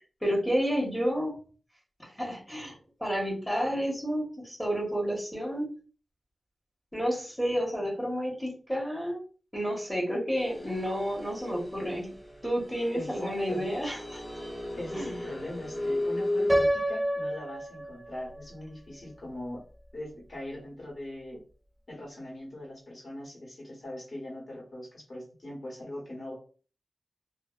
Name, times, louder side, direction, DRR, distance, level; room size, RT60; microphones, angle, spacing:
voice 1, 0.2-1.4 2.0-5.7 6.9-9.2 9.5-12.1 12.4-14.2 14.9-15.1, equal, 10° left, -3 dB, 1.1 m, -30 dB
sound 1, 10.4-16.7, left 1 dB, 25° left, 0.8 m, -35 dB
voice 2, 12.9-13.7 14.8-19.6 19.9-21.4 21.9-26.3, left 1 dB, 50° left, -4 dB, 1.4 m, -40 dB
Piano, 16.5-18.5, right 1 dB, 20° right, 0.5 m, -28 dB
2.5 x 2.1 x 2.4 m, 0.38 s
wide cardioid pair, 70°, 0 cm